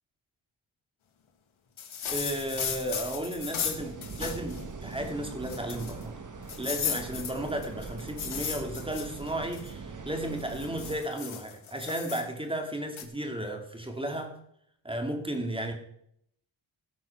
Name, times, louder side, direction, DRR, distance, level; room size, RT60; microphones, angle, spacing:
sound 1, 1.8-4.6 5.0-5.1 5.5-6.0 6.5-9.7 10.3-12.2 13.0-13.1, left 8 dB, 80° left, 1.6 m, -35 dB
sound 2, 2.0-11.0, right 4 dB, 40° right, 1.4 m, -42 dB
voice 1, 2.1-6.1 6.6-14.3 14.8-15.7, right 1 dB, 10° right, 3 dB, 2.5 m, -34 dB
17.0 x 6.1 x 5.9 m, 0.71 s
cardioid pair, 90°, 47 cm